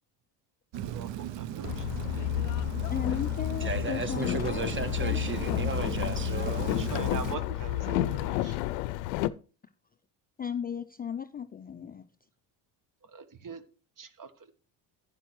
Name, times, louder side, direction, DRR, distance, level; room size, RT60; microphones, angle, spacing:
Rain, 0.7-7.4, right 11 dB, 60° right, 0.7 m, -38 dB
voice 1, 0.8-2.3 6.8-8.6 13.0-13.6 14.0-14.3, right 5 dB, 40° right, 1.3 m, -42 dB
Boat Water vehicle, 1.6-9.3, left 16 dB, 85° left, 0.6 m, -31 dB
voice 2, 2.9-4.7 5.0-5.7 8.5-8.6 10.4-12.0, left 8 dB, 20° left, 0.4 m, -36 dB
voice 3, 3.6-6.7, right 4 dB, 25° right, 1.2 m, -35 dB
11.5 x 9.6 x 3.1 m
supercardioid pair, 70°, 50 cm